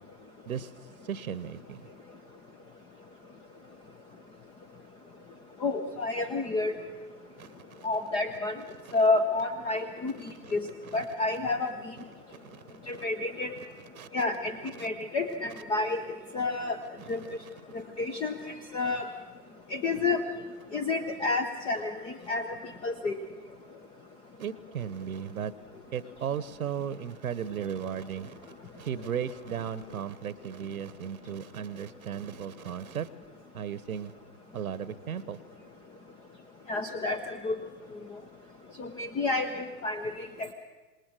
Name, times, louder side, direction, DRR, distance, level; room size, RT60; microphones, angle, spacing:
voice 1, 1.0-1.9 7.4-7.5 7.7-7.9 8.8-8.9 10.4-10.5 10.9-11.0 12.4-12.6 12.9-13.0 14.0-14.1 14.8-14.9 17.2-17.5 24.4-25.5 25.9-33.1 33.5-34.1 34.5-35.4, right 8 dB, 60° right, 18 dB, 1.1 m, -36 dB
voice 2, 5.6-6.7 7.8-8.5 8.9-10.1 10.5-10.6 10.9-11.7 12.9-13.5 14.1-14.5 14.8-16.0 16.3-16.8 17.1-17.2 18.0-18.4 18.7-19.1 19.7-20.2 20.7-21.9 22.3-22.5 22.8-23.1 36.7-37.5 38.8-40.3, left 3 dB, 10° left, 9 dB, 0.7 m, -29 dB
27.0 x 20.5 x 6.4 m, 1.3 s
figure-of-eight pair, 110°, 48 cm